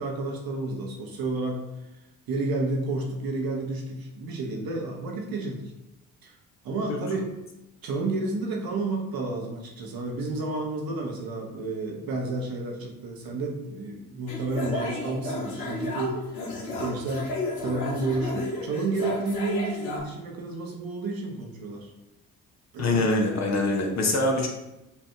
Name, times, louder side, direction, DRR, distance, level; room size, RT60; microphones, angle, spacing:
voice 1, 0.0-1.6 2.3-5.6 6.2-6.4 6.6-7.3 7.8-16.2 16.8-17.3 17.6-21.9 22.7-23.0, right 2 dB, 55° right, 0 dB, 1.0 m, -31 dB
sound 1, 14.3-20.0, left 2 dB, 80° left, 0.8 m, -33 dB
voice 2, 22.8-24.5, left 2 dB, 40° left, 1 dB, 0.9 m, -24 dB
5.5 x 2.6 x 2.3 m, 0.93 s
hypercardioid pair, 45°, 43 cm